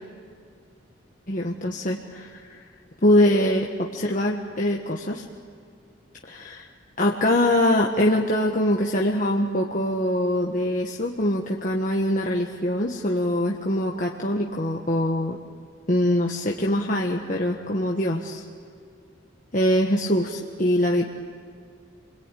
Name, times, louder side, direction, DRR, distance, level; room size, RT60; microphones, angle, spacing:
voice 1, 1.3-2.5 3.0-5.2 6.3-6.7 7.0-15.4 15.9-18.4 19.5-21.0, left 1 dB, 40° left, -1 dB, 1.4 m, -23 dB
28.5 x 21.5 x 9.2 m, 2.3 s
head